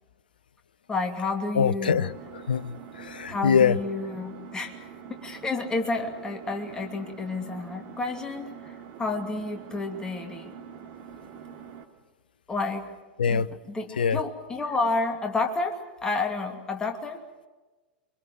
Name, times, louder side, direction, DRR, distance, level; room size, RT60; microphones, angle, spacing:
voice 1, 0.9-2.1 3.3-4.7 5.2-10.6 12.5-12.9 13.3-17.2, left 3 dB, 15° left, 2.6 m, -30 dB
voice 2, 1.6-3.8 13.2-13.5 14.0-14.2, left 6 dB, 70° left, 0.7 m, -24 dB
Engine, 1.8-11.8, right 7 dB, 40° right, 3.0 m, -45 dB
24.5 x 24.5 x 7.8 m
figure-of-eight pair, 90°, 5 cm